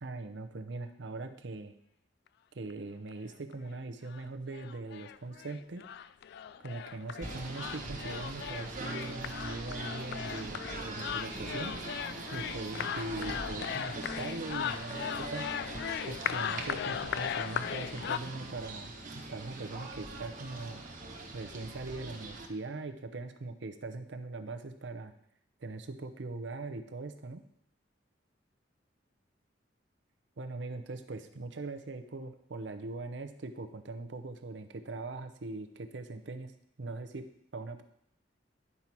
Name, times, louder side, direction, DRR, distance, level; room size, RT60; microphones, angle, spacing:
voice 1, 0.0-1.7 2.5-5.8 6.6-11.8 12.3-15.5 16.1-18.9 19.3-20.8 21.3-25.1 25.6-27.4 30.4-36.5 36.8-37.3 37.5-37.8, right 3 dB, 70° right, 9 dB, 0.7 m, -41 dB
sound 1, 2.7-2.8 3.1-3.2 3.5-3.6 4.1-4.2 4.5-18.2, left 9 dB, 60° left, 0.3 m, -38 dB
Singing / Bird, 7.2-22.5, right 2 dB, 45° right, 1.3 m, -42 dB
9.7 x 5.5 x 4.5 m, 0.73 s
head